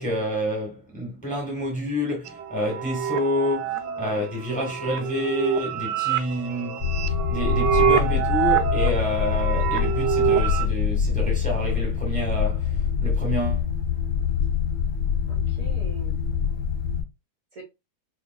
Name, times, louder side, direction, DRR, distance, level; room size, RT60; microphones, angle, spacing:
voice 1, 0.0-6.9 7.3-13.6, left 1 dB, 5° left, 1.5 m, -28 dB
sound 1, 2.3-10.7, right 8 dB, 70° right, 1.1 m, -26 dB
voice 2, 3.6-4.5 15.3-16.2 17.5-17.6, right 2 dB, 45° right, 1.6 m, -44 dB
sound 2, 6.8-17.0, left 7 dB, 45° left, 1.8 m, -25 dB
4.8 x 3.4 x 2.3 m
omnidirectional pair, 2.2 m